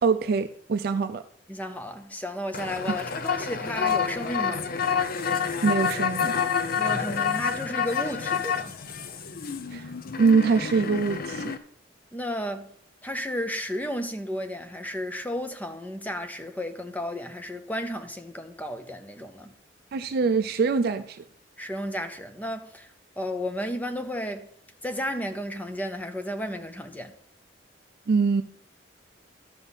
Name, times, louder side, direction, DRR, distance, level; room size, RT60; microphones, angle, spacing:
voice 1, 0.0-1.2 2.9-3.0 5.6-6.3 9.7-9.9 10.2-11.5 19.9-21.2 28.1-28.4, right 4 dB, 60° right, 0.4 m, -23 dB
voice 2, 1.5-4.7 6.8-8.7 12.1-12.7 13.0-19.5 21.6-22.9 23.2-24.5 24.8-27.1, equal, 10° left, 0.7 m, -33 dB
sound 1, 2.5-11.6, left 6 dB, 55° left, 0.6 m, -28 dB
12.5 x 5.4 x 4.1 m
head